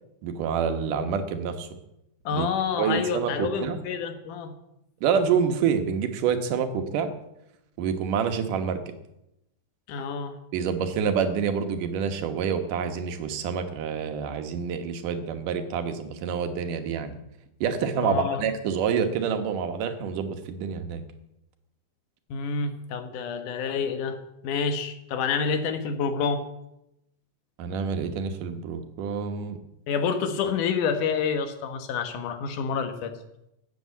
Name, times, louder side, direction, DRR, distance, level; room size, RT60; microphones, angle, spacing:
voice 1, 0.2-1.7 2.3-2.5 2.8-3.8 5.0-7.1 7.8-8.9 10.5-17.2 17.6-21.0 27.6-29.6, right 6 dB, 90° right, 8 dB, 2.8 m, -27 dB
voice 2, 2.3-4.5 9.9-10.4 18.0-18.4 22.3-24.2 24.4-26.4 29.9-33.1, left 6 dB, 80° left, 8 dB, 2.8 m, -28 dB
13.0 x 8.3 x 8.2 m, 0.86 s
omnidirectional pair, 3.6 m